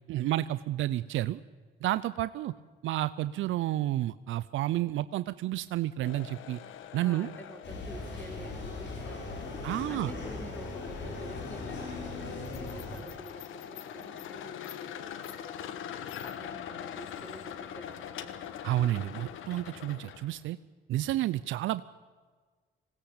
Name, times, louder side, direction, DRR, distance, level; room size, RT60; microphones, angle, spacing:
voice 1, 0.1-1.4 1.8-2.5 2.8-6.6 6.9-7.3 9.6-10.1 18.6-20.6 20.9-21.8, right 14 dB, 80° right, 14 dB, 0.5 m, -30 dB
sound 1, 6.0-20.4, left 9 dB, 85° left, 1.4 m, -43 dB
voice 2, 7.0-9.5 9.8-18.3, equal, 10° left, 5 dB, 3.5 m, -49 dB
sound 2, 7.6-13.0, left 3 dB, 65° left, 5.2 m, -39 dB
20.0 x 17.0 x 8.8 m, 1.5 s
cardioid pair, 90°, 20 cm